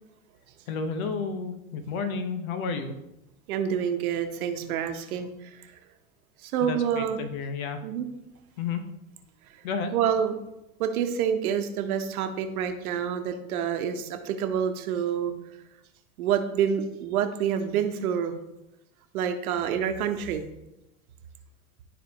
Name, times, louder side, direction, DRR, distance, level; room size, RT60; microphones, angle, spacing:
voice 1, 0.7-2.9 6.6-7.8 8.6-8.8 9.6-9.9, left 5 dB, 65° left, 8 dB, 1.2 m, -31 dB
voice 2, 3.5-5.3 6.4-7.2 7.8-8.1 9.9-10.4 10.8-15.3 16.2-18.3 19.1-20.4, right 8 dB, 75° right, 7 dB, 1.1 m, -27 dB
12.5 x 4.2 x 3.0 m, 0.90 s
hypercardioid pair, 105°, 44 cm